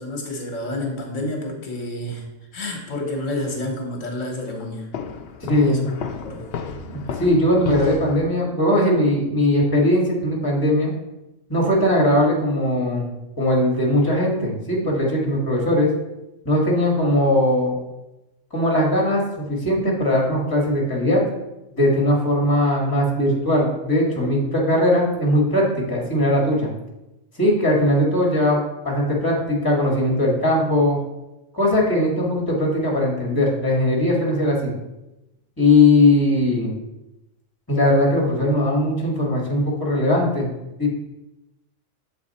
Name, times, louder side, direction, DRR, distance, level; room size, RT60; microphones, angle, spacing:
voice 1, 0.0-2.2 2.5-4.9 5.5-5.8 6.1-6.4, left 1 dB, 75° left, 2 dB, 1.4 m, -29 dB
Walk footsteps, 4.9-8.2, left 6 dB, 60° left, 0.7 m, -33 dB
voice 2, 5.5-5.9 6.9-10.9 11.5-13.1 13.4-15.9 16.4-17.8 18.5-21.2 21.7-26.7 27.4-28.6 28.8-31.0 31.5-34.7 35.6-36.7 37.7-40.5 40.8-40.9, left 1 dB, 15° left, -2 dB, 1.6 m, -19 dB
7.1 x 4.3 x 4.1 m, 0.95 s
omnidirectional pair, 1.3 m